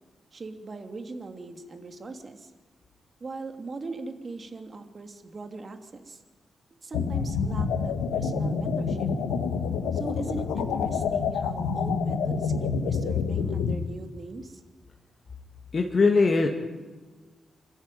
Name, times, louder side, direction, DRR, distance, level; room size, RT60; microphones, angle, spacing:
voice 1, 0.3-2.5 3.2-6.2 6.8-9.1 9.9-14.6, right 3 dB, 50° right, 6 dB, 3.0 m, -40 dB
sound 1, 6.9-13.8, left 5 dB, 90° left, 1.6 m, -27 dB
voice 2, 15.7-16.5, left 4 dB, 50° left, 2 dB, 2.2 m, -20 dB
26.0 x 14.0 x 9.5 m, 1.4 s
supercardioid pair, 45°, 0 cm